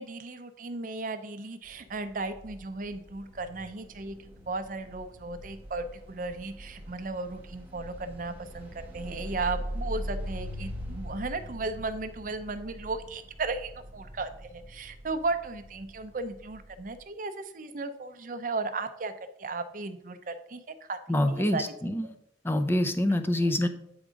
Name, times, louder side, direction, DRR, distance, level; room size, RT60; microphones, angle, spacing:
voice 1, 0.0-4.2 4.5-19.1 19.4-21.0 21.3-21.7 23.4-23.5, right 3 dB, 45° right, 9 dB, 0.6 m, -35 dB
sound 1, 1.6-17.0, equal, 10° right, 1.2 m, -42 dB
voice 2, 21.1-22.1 22.4-23.7, left 1 dB, 15° left, 7 dB, 0.5 m, -26 dB
8.8 x 3.6 x 5.0 m, 0.78 s
head